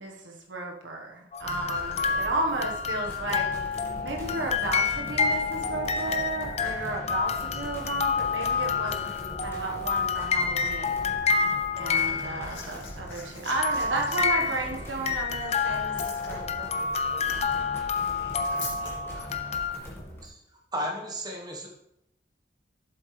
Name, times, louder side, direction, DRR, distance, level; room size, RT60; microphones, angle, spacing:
voice 1, 0.0-9.1 9.4-11.5 11.7-16.7, right 2 dB, 90° right, 1 dB, 1.4 m, -33 dB
sound 1, 1.3-12.9 13.6-19.8, left 5 dB, 35° left, 0.5 m, -29 dB
sound 2, 1.4-20.3, left 1 dB, 15° left, 1.7 m, -41 dB
Liquid, 12.0-18.9 20.0-20.1, left 5 dB, 85° left, 2.3 m, -45 dB
voice 2, 17.2-19.3, right 1 dB, 50° right, -4 dB, 2.9 m, -51 dB
voice 3, 20.7-21.7, equal, 20° right, 1 dB, 1.4 m, -33 dB
7.6 x 7.6 x 3.3 m, 0.81 s
head